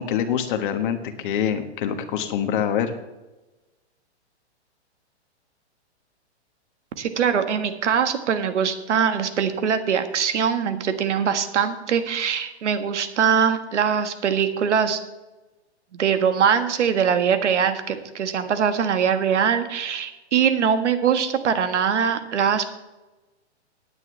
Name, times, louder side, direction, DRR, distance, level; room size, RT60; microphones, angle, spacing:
voice 1, 0.0-2.9, left 8 dB, 45° left, 7 dB, 1.5 m, -25 dB
voice 2, 7.0-15.0 15.9-22.7, right 7 dB, 80° right, 9 dB, 1.6 m, -22 dB
18.0 x 9.9 x 3.3 m, 1.1 s
hypercardioid pair, 155°, 35 cm